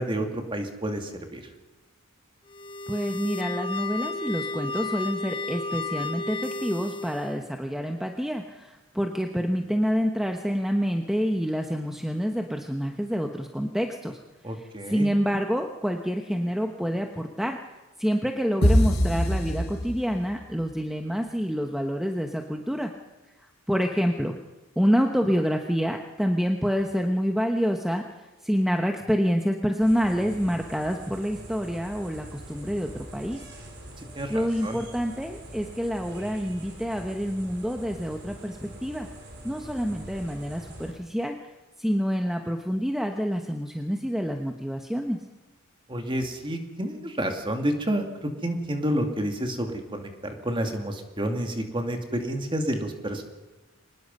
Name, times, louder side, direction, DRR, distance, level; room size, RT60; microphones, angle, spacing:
voice 1, 0.0-1.4 14.4-15.1 34.2-34.8 45.9-48.1 48.4-53.2, right 1 dB, 25° right, 4 dB, 2.5 m, -29 dB
sound 1, 2.5-7.4, left 3 dB, 25° left, 1.4 m, -33 dB
voice 2, 2.9-14.2 14.5-17.6 18.0-22.9 23.7-24.4 24.8-33.4 34.3-39.1 39.4-41.4 41.8-45.2, equal, ahead, 4 dB, 1.0 m, -27 dB
sound 2, 18.6-20.4, equal, 50° left, 3.9 m, -23 dB
sound 3, 29.8-40.9, right 1 dB, 55° right, 4.5 m, -44 dB
24.0 x 20.0 x 5.5 m, 1.1 s
head